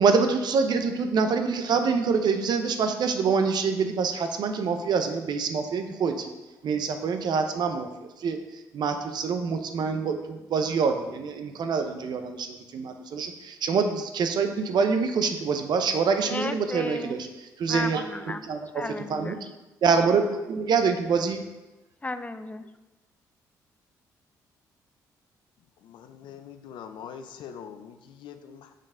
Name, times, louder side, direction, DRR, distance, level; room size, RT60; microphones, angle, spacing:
voice 1, 0.0-6.3 6.6-17.3 17.6-18.0 18.5-18.8 19.1-19.4 19.8-21.4, right 5 dB, 60° right, 6 dB, 0.7 m, -25 dB
voice 2, 16.3-17.2 17.7-18.5 18.7-19.5 22.0-22.7, left 2 dB, 20° left, 10 dB, 0.4 m, -34 dB
voice 3, 25.8-28.7, left 8 dB, 75° left, 8 dB, 0.5 m, -43 dB
6.4 x 4.0 x 3.8 m, 1.1 s
supercardioid pair, 60°, 8 cm